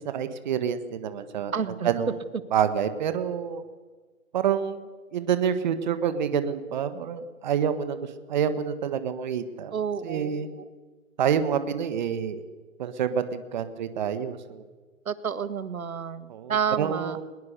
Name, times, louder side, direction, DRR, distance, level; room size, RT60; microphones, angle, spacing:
voice 1, 0.0-2.2 2.5-3.6 4.3-8.0 8.3-9.7 10.0-10.5 11.2-12.4 12.8-14.6 16.3-17.2, right 8 dB, 35° right, 11 dB, 1.4 m, -27 dB
voice 2, 1.5-1.9 9.7-10.7 15.1-17.2, right 7 dB, 80° right, 14 dB, 1.7 m, -30 dB
21.0 x 21.0 x 6.8 m, 1.4 s
hypercardioid pair, 155°, 41 cm